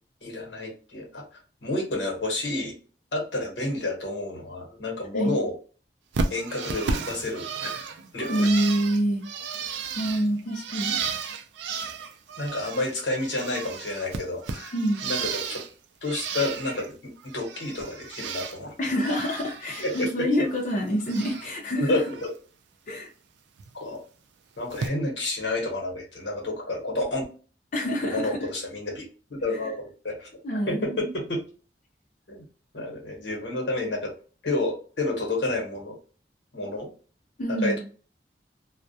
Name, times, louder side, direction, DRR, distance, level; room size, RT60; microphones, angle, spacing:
voice 1, 0.2-1.2 1.6-2.7 3.1-5.5 6.3-8.5 12.4-14.7 15.0-15.6 16.0-18.7 19.8-20.3 21.8-22.3 23.7-24.0 24.6-27.2 28.0-30.3 30.7-31.4 32.3-32.4 32.7-34.1 34.4-36.0 36.5-36.9 37.6-37.8, left 2 dB, 90° left, 1.0 m, -30 dB
Bird, 6.1-12.9 13.2-15.7 16.0-16.9 17.2-18.6 18.9-20.1 20.4-21.5 21.9-22.3 23.6-23.7 24.7-24.9, right 5 dB, 85° right, 0.4 m, -33 dB
voice 2, 8.3-9.2 9.9-10.9 14.7-15.1 18.8-22.0 22.9-23.1 27.7-28.4 29.5-29.6 30.4-31.1 37.4-37.8, equal, 45° left, 0.5 m, -26 dB
2.2 x 2.1 x 2.6 m
head